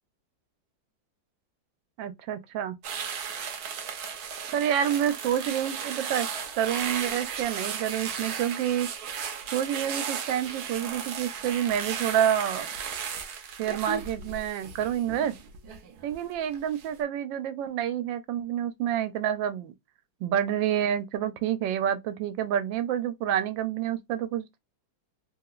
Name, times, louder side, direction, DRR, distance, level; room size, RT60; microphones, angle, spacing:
voice 1, 2.0-2.8 4.5-6.3 6.6-8.9 9.5-12.7 13.6-15.3 16.0-19.7 20.2-24.6, right 10 dB, 80° right, 1.3 m, -28 dB
sound 1, 2.8-16.2 16.5-16.9, right 7 dB, 65° right, 1.1 m, -35 dB
3.5 x 2.9 x 2.3 m
omnidirectional pair, 2.0 m